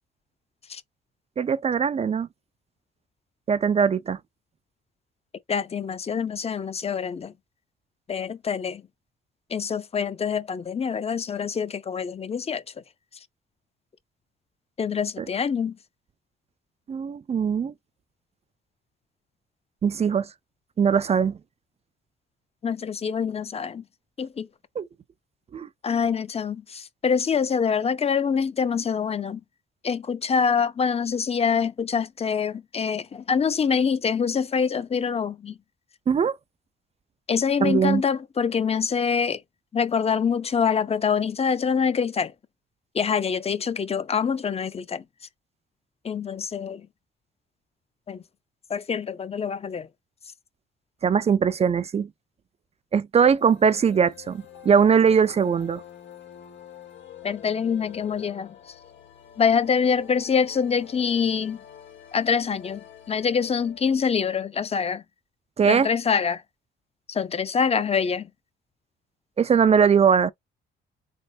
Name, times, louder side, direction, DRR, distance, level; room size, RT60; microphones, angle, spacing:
voice 1, 1.4-2.3 3.5-4.2 15.2-15.3 16.9-17.7 19.8-20.3 20.8-21.4 24.8-24.9 25.5-25.7 36.1-36.4 37.6-38.0 51.0-52.1 52.9-55.8 65.6-65.9 69.4-70.3, right 6 dB, 30° right, 0.4 m, -21 dB
voice 2, 5.5-7.3 8.1-8.8 9.5-12.6 14.8-15.8 22.6-23.8 24.2-24.5 25.8-29.4 29.8-35.6 37.3-39.4 39.7-42.3 42.9-45.0 46.0-46.8 48.1-48.2 48.7-49.9 57.2-58.6 59.4-61.6 62.1-62.8 63.1-65.0 65.6-66.4 67.1-68.3, left 6 dB, 30° left, 0.5 m, -25 dB
sound 1, 53.4-64.2, left 9 dB, 70° left, 1.7 m, -47 dB
3.8 x 3.3 x 2.6 m
cardioid pair, 90°, 20 cm